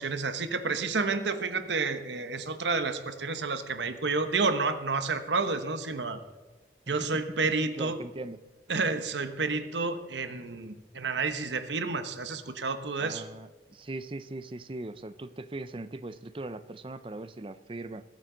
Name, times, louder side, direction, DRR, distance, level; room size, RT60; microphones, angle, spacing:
voice 1, 0.0-6.2 6.9-8.0 8.7-13.2, right 4 dB, 85° right, 9 dB, 1.0 m, -30 dB
voice 2, 7.7-8.4 13.0-18.0, right 2 dB, 30° right, 13 dB, 0.5 m, -40 dB
21.5 x 9.2 x 3.9 m, 1.2 s
head